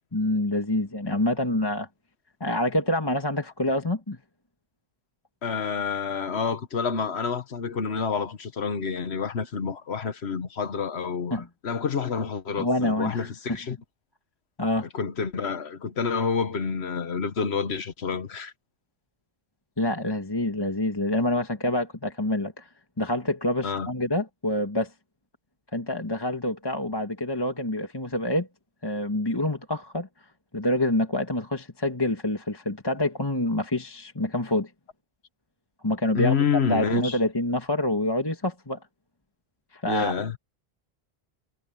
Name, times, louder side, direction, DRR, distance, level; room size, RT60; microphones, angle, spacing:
voice 1, 0.1-1.9 2.4-4.2 11.3-11.5 12.6-13.6 14.6-14.9 19.8-22.7 23.0-24.9 25.7-28.5 28.8-30.1 30.5-34.7 35.8-36.3 36.7-38.8 39.7-40.1, left 1 dB, 20° left, 1.8 m, -26 dB
voice 2, 5.4-13.8 14.8-18.5 23.6-23.9 36.1-37.2 39.9-40.4, left 6 dB, 85° left, 1.5 m, -28 dB
omnidirectional pair, 1.1 m